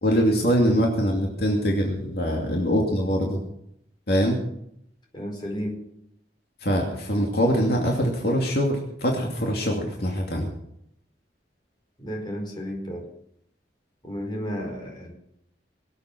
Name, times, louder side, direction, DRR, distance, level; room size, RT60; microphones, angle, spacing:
voice 1, 0.0-3.4 4.1-4.4 6.6-10.5, equal, 60° left, -1 dB, 2.7 m, -23 dB
voice 2, 5.1-5.8 12.0-13.1 14.0-15.1, equal, 25° left, 1 dB, 4.7 m, -32 dB
22.5 x 8.4 x 6.1 m, 0.76 s
head